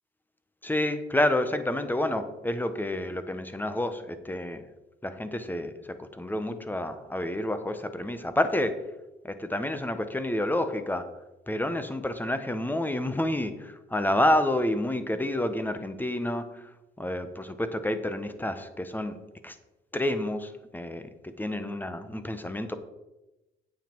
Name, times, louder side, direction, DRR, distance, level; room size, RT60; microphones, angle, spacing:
voice 1, 0.6-4.6 5.0-8.8 9.2-11.1 11.5-16.6 17.0-19.2 19.4-19.6 19.9-21.0 21.4-22.8, left 1 dB, 10° left, 10 dB, 0.9 m, -29 dB
8.9 x 7.5 x 4.5 m, 1.0 s
cardioid pair, 90°, 20 cm